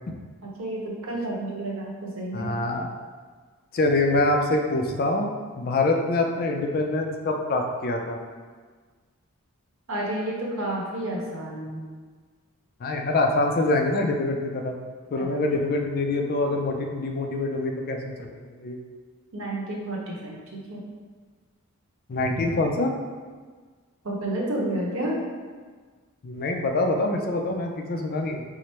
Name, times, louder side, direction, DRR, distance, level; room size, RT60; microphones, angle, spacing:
voice 1, 0.4-2.5 9.9-11.8 15.2-15.3 19.3-20.4 20.7-20.8 24.0-25.2, right 1 dB, 65° right, -3 dB, 0.9 m, -30 dB
voice 2, 2.3-2.9 3.7-5.3 5.6-8.2 12.8-14.8 15.1-18.3 18.6-18.8 22.1-22.9 26.2-28.4, left 2 dB, 45° left, 3 dB, 0.4 m, -25 dB
4.7 x 2.0 x 4.2 m, 1.5 s
head